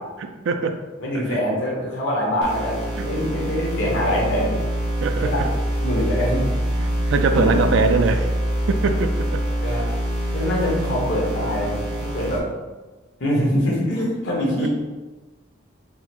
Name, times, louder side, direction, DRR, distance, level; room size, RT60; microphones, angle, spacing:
voice 1, 0.2-0.8 1.1-1.4 3.0-3.1 5.0-5.4 7.1-8.3 8.7-9.4 14.6-14.7, right 4 dB, 70° right, 7 dB, 0.3 m, -22 dB
voice 2, 1.0-4.6 5.2-5.5 5.8-6.9 7.3-7.7 9.6-9.9 10.3-12.4 13.2-14.7, equal, 65° left, -4 dB, 1.2 m, -24 dB
sound 1, 2.4-12.4, right 1 dB, 50° right, 0.8 m, -25 dB
3.7 x 2.0 x 4.3 m, 1.2 s
head